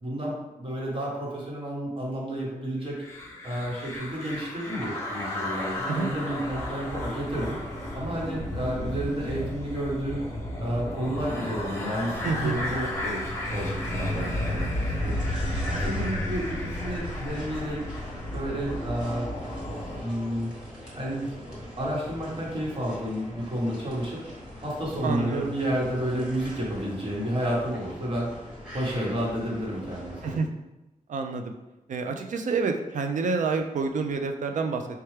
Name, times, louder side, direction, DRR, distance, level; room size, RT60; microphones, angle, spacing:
voice 1, 0.0-2.9 3.4-10.2 10.6-14.7 15.0-15.2 15.7-17.8 18.3-19.3 19.9-20.5 20.9-24.3 24.6-28.3 28.7-30.4, equal, 40° right, -4 dB, 1.1 m, -31 dB
sound 1, 3.0-20.0, left 1 dB, 20° left, 0.7 m, -32 dB
voice 2, 12.2-12.6 25.0-25.5 30.2-30.5 31.1-31.5 31.9-34.9, right 4 dB, 65° right, 5 dB, 0.4 m, -28 dB
sound 2, 13.3-30.4, equal, 5° right, 1.1 m, -42 dB
4.4 x 2.2 x 3.2 m, 1.0 s
wide cardioid pair, 155°, 14 cm